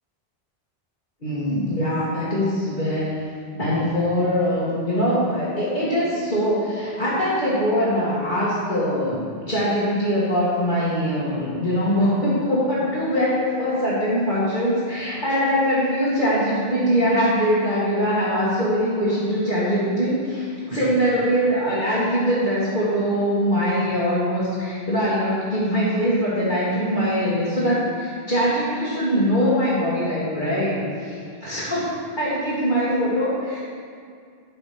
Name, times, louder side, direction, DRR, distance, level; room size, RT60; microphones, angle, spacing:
voice 1, 1.2-3.2 3.6-31.9 32.2-33.6, equal, 50° left, -11 dB, 2.4 m, -22 dB
12.5 x 5.7 x 5.3 m, 2.2 s
omnidirectional pair, 1.0 m